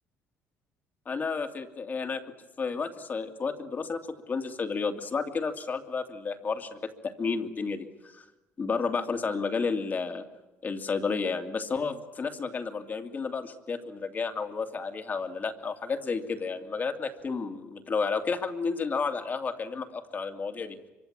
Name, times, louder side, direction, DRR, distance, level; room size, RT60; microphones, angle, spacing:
voice 1, 1.1-2.2 2.6-8.2 8.6-10.2 10.6-20.8, left 4 dB, 35° left, 6 dB, 2.5 m, -31 dB
25.0 x 24.5 x 8.7 m, 1.1 s
cardioid pair, 105°, 5 cm